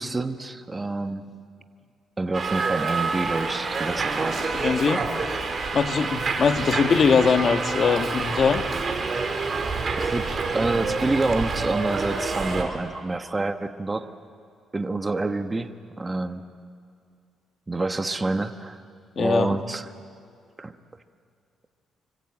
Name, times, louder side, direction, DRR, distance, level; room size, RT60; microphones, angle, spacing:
voice 1, 0.0-1.4 2.2-4.4 10.0-14.1 14.7-16.5 17.7-18.8 19.2-19.9 20.6-20.8, right 2 dB, 20° right, 8 dB, 1.2 m, -27 dB
Subway metro underground, 2.3-12.6, right 4 dB, 40° right, 3.7 m, -27 dB
voice 2, 4.6-5.0 5.7-8.6 19.2-19.6, left 5 dB, 50° left, 7 dB, 1.5 m, -21 dB
25.5 x 24.5 x 8.7 m, 2.3 s
cardioid pair, 90°, 0 cm